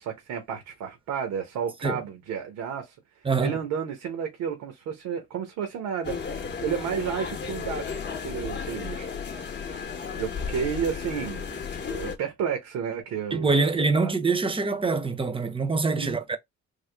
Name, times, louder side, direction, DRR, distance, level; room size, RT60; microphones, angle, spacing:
voice 1, 0.0-3.0 3.4-7.8 8.2-11.5 11.8-13.7 14.0-14.1 15.9-16.1, right 7 dB, 90° right, 0.9 m, -32 dB
voice 2, 3.2-3.6 13.3-16.4, right 4 dB, 20° right, 0.6 m, -25 dB
sound 1, 6.0-12.2, left 6 dB, 35° left, 0.7 m, -34 dB
3.4 x 2.0 x 3.3 m
cardioid pair, 90°, 30 cm